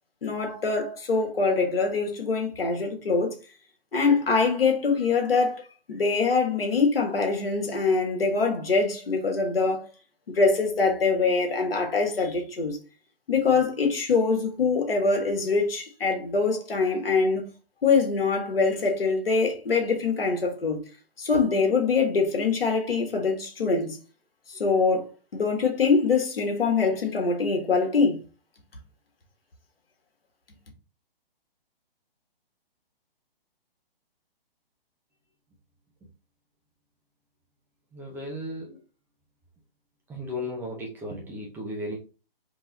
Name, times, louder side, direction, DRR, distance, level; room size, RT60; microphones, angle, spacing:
voice 1, 0.2-3.3 3.9-5.6 5.9-9.9 10.3-12.8 13.3-17.5 17.8-20.8 21.2-24.0 24.5-25.1 25.3-28.2, left 4 dB, 70° left, 1.7 m, -24 dB
voice 2, 37.9-38.8 40.1-42.0, left 1 dB, 5° right, 0.6 m, -35 dB
3.9 x 3.1 x 3.9 m
figure-of-eight pair, 135°, 30 cm